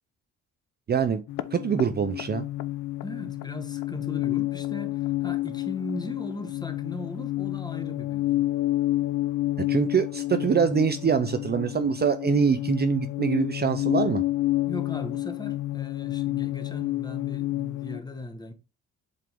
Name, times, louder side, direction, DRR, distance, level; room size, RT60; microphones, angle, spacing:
voice 1, 0.9-1.2 1.5-2.5 9.7-14.2, right 7 dB, 35° right, 0.5 m, -24 dB
sound 1, 1.3-18.0, left 16 dB, 80° left, 0.6 m, -29 dB
voice 2, 3.0-8.5 14.7-18.5, left 2 dB, 15° left, 1.2 m, -38 dB
7.5 x 3.8 x 3.5 m
cardioid pair, 90°, 30 cm